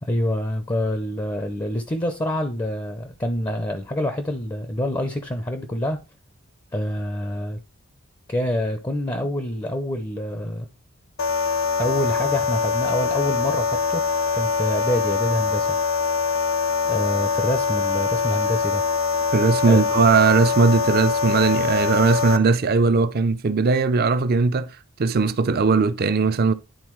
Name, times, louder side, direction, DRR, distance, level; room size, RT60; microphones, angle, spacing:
voice 1, 0.0-6.0 6.7-7.6 8.3-10.7 11.8-14.0 14.3-15.8 16.8-18.8 19.7-19.9, left 1 dB, 20° left, 0.5 m, -26 dB
sound 1, 11.2-22.4, left 5 dB, 70° left, 0.6 m, -23 dB
voice 2, 19.3-24.7 25.0-26.5, right 4 dB, 45° right, 0.5 m, -19 dB
10.5 x 3.9 x 3.0 m
head